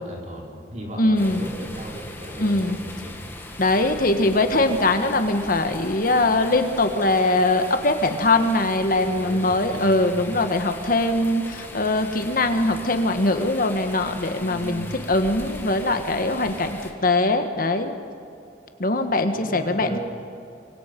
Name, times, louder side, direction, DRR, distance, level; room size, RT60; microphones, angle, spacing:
voice 1, 0.0-3.2 9.1-10.2 14.4-15.0 19.3-20.0, right 1 dB, 40° right, -1 dB, 4.2 m, -37 dB
voice 2, 1.0-1.5 2.4-2.8 3.6-17.9 18.8-20.0, left 2 dB, 55° left, 7 dB, 1.5 m, -22 dB
sound 1, 1.2-16.9, left 1 dB, 15° left, 2.2 m, -39 dB
25.0 x 24.0 x 5.4 m, 2.6 s
head